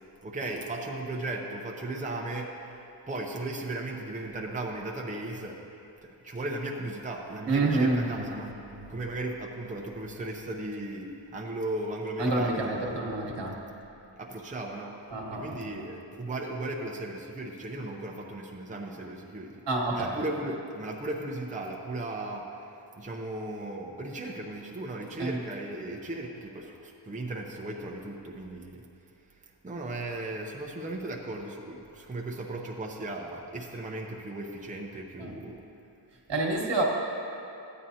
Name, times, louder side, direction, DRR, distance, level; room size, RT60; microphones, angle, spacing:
voice 1, 0.2-5.6 6.0-8.5 8.9-12.9 14.2-15.0 15.3-19.5 19.9-22.7 23.0-28.8 29.6-35.6, right 2 dB, 15° right, -1 dB, 0.7 m, -36 dB
voice 2, 7.5-8.8 12.2-13.5 15.1-15.7 19.7-20.1 25.2-25.4 35.2-35.3 36.3-36.8, right 2 dB, 70° right, -1 dB, 1.4 m, -28 dB
13.5 x 9.0 x 2.8 m, 2.9 s
wide cardioid pair, 115°, 44 cm